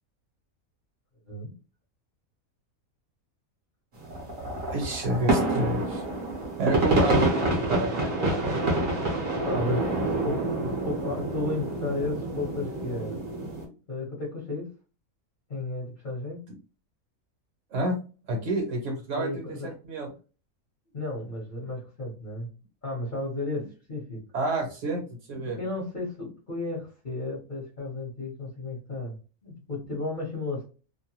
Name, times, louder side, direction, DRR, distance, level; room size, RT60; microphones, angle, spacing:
sound 1, 4.0-13.6, right 2 dB, 45° right, 0.9 m, -27 dB
voice 1, 4.7-6.0 6.6-8.2 17.7-18.0 18.3-20.1 24.3-25.6, right 2 dB, 60° right, 2 dB, 1.1 m, -29 dB
voice 2, 9.4-10.4 10.8-13.2 13.9-14.7 15.5-16.4 19.2-19.7 20.9-22.5 22.8-24.2 25.6-29.2 29.4-30.6, left 2 dB, 40° left, -4 dB, 1.0 m, -33 dB
2.6 x 2.2 x 2.8 m, 0.35 s
omnidirectional pair, 1.5 m